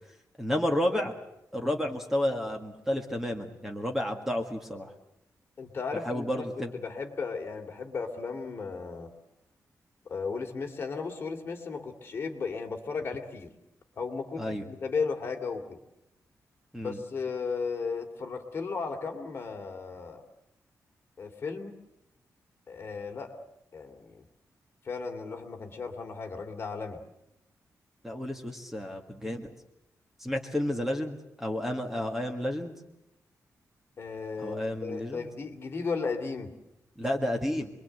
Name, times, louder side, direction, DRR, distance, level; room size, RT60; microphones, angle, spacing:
voice 1, 0.4-1.1 1.5-4.9 6.0-6.7 14.4-14.7 16.7-17.0 28.0-29.5 30.2-32.8 34.4-35.3 37.0-37.7, left 1 dB, 5° right, 3 dB, 1.8 m, -31 dB
voice 2, 5.6-6.5 6.7-9.1 10.0-13.5 14.0-15.8 16.8-20.2 21.2-21.8 22.7-23.3 23.7-24.2 24.8-27.0 34.0-36.5, left 4 dB, 40° left, 3 dB, 2.8 m, -35 dB
27.0 x 22.5 x 7.9 m, 0.85 s
wide cardioid pair, 180°, 6 cm